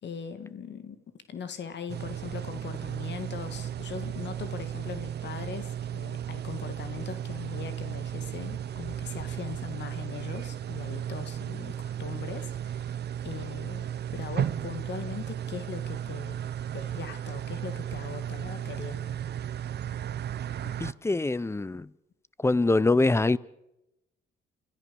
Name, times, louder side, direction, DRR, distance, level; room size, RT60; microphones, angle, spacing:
voice 1, 0.0-13.0 13.2-16.4 16.7-19.2, left 7 dB, 60° left, 2.1 m, -40 dB
sound 1, 1.9-20.9, right 10 dB, 55° right, 0.9 m, -35 dB
voice 2, 20.8-21.9 22.4-23.4, left 2 dB, 15° left, 0.6 m, -24 dB
29.5 x 14.0 x 7.0 m
cardioid pair, 90°, 20 cm